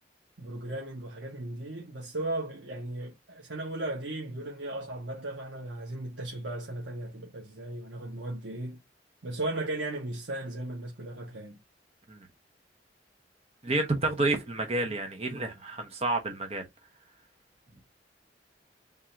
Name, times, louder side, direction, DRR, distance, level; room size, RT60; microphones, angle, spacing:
voice 1, 0.4-8.8 9.2-11.6, right 2 dB, 80° right, 1.2 m, -36 dB
voice 2, 13.6-16.7, right 2 dB, 35° right, 0.9 m, -29 dB
3.7 x 2.7 x 4.4 m
head